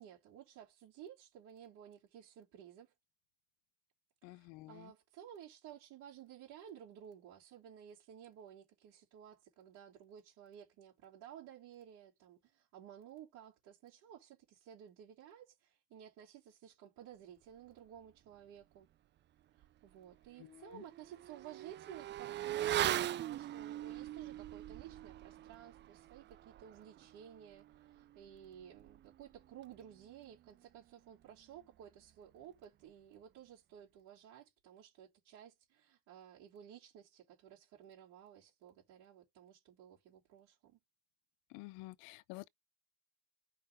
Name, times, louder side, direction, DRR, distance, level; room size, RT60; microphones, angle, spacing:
voice 1, 0.0-2.9 4.2-18.9 19.5-40.8, right 10 dB, 75° right, 3.4 m, -55 dB
voice 2, 4.2-4.9 20.4-20.8 41.5-42.5, left 20 dB, 75° left, 0.6 m, -50 dB
Motorcycle / Accelerating revving vroom, 19.6-19.7 20.1-30.1 30.4-30.5, right 12 dB, 35° right, 0.4 m, -41 dB
5.6 x 4.1 x 5.0 m
supercardioid pair, 70°, 31 cm